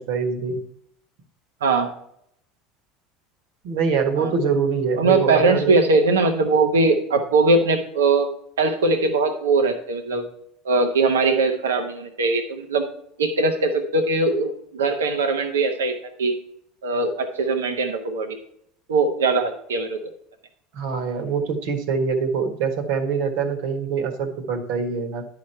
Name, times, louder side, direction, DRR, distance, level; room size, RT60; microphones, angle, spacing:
voice 1, 0.1-0.6 3.6-5.8 20.7-25.3, right 5 dB, 70° right, 6 dB, 1.5 m, -24 dB
voice 2, 1.6-1.9 4.2-4.3 5.0-8.3 8.6-10.2 10.6-12.9 13.2-16.4 16.8-18.4 18.9-20.1, right 3 dB, 85° right, 5 dB, 1.0 m, -21 dB
10.5 x 5.1 x 4.3 m, 0.72 s
hypercardioid pair, 80°, 0 cm